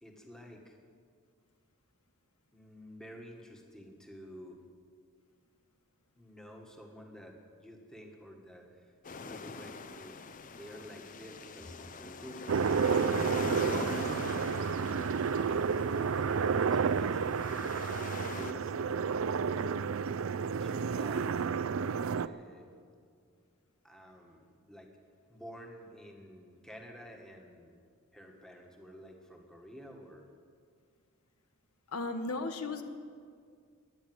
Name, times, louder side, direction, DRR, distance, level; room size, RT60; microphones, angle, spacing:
voice 1, 0.0-0.8 2.5-4.6 6.2-8.9 9.2-10.1 10.5-14.0 14.6-15.6 15.9-17.4 17.9-20.1 20.6-21.3 22.1-22.7 23.8-24.9 25.3-27.8 28.1-30.3, equal, 5° left, 1 dB, 1.6 m, -50 dB
sound 1, 9.0-18.5, left 4 dB, 35° left, 0.6 m, -43 dB
sound 2, 12.5-22.3, right 6 dB, 65° right, 0.4 m, -31 dB
voice 2, 31.9-32.8, left 3 dB, 85° left, 7 dB, 1.2 m, -35 dB
17.0 x 10.5 x 7.9 m, 2.2 s
head